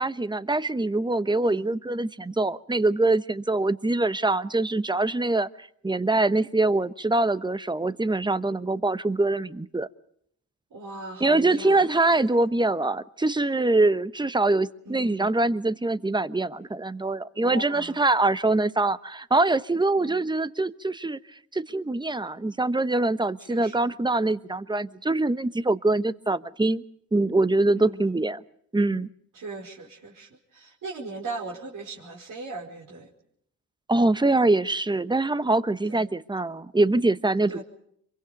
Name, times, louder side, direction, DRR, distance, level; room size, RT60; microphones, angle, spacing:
voice 1, 0.0-9.9 11.2-21.2 21.5-26.8 27.1-28.4 28.7-29.1 33.9-37.6, right 2 dB, 10° right, 14 dB, 1.0 m, -24 dB
voice 2, 10.7-12.4 14.9-15.4 17.4-18.0 20.0-20.2 23.5-23.9 27.8-28.2 29.3-33.1 35.9-36.1 37.5-37.6, right 3 dB, 60° right, -2 dB, 5.1 m, -39 dB
26.5 x 23.5 x 5.3 m, 0.68 s
supercardioid pair, 65°, 36 cm